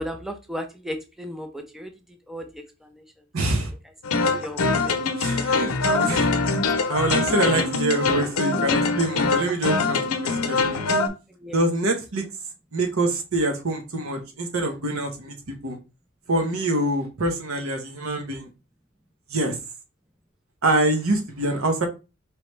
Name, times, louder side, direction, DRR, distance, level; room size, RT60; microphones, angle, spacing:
voice 1, 0.0-1.9 2.3-3.0 4.2-5.0 11.4-11.6, equal, ahead, 0.4 m, -35 dB
voice 2, 3.3-3.7 5.2-6.3 6.9-10.8 11.5-12.3 12.7-15.3 15.6-15.8 16.3-18.5 19.3-19.6 20.6-21.9, right 1 dB, 75° right, 1.0 m, -25 dB
sound 1, 4.0-11.1, left 3 dB, 90° left, 0.7 m, -23 dB
4.8 x 3.1 x 3.2 m
head